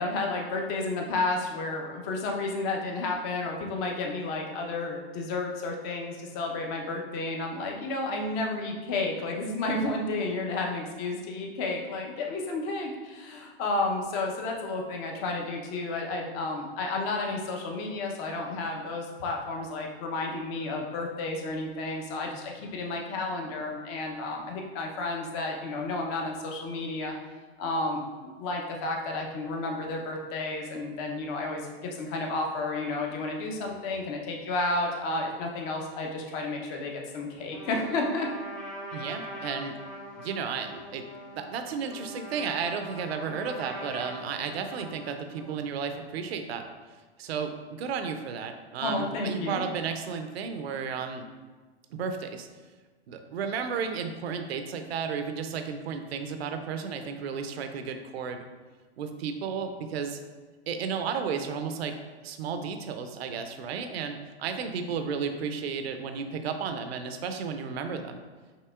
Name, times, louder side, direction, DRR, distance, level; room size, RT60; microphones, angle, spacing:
voice 1, 0.0-27.1 27.6-38.3 48.8-49.6, left 2 dB, 35° left, 1 dB, 0.8 m, -31 dB
Trumpet, 37.5-45.6, equal, 5° left, 0.5 m, -42 dB
voice 2, 38.9-39.8 40.2-41.1 41.3-46.6 47.2-51.3 51.9-52.5 53.1-58.5 59.0-60.2 60.7-62.0 62.2-68.2, right 6 dB, 70° right, 7 dB, 0.6 m, -33 dB
5.7 x 2.9 x 2.4 m, 1.4 s
hypercardioid pair, 130°, 32 cm